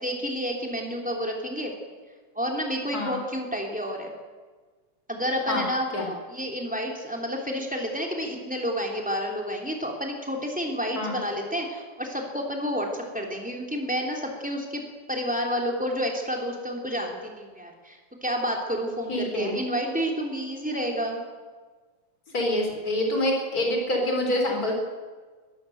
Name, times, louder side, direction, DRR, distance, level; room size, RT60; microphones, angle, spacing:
voice 1, 0.0-1.7 2.3-4.1 5.1-5.9 6.3-12.9 13.1-14.8 15.1-21.2, equal, 5° right, 0 dB, 3.0 m, -30 dB
voice 2, 19.1-19.6 22.3-24.7, left 1 dB, 30° left, 2 dB, 4.4 m, -26 dB
21.5 x 15.0 x 8.0 m, 1.4 s
omnidirectional pair, 3.4 m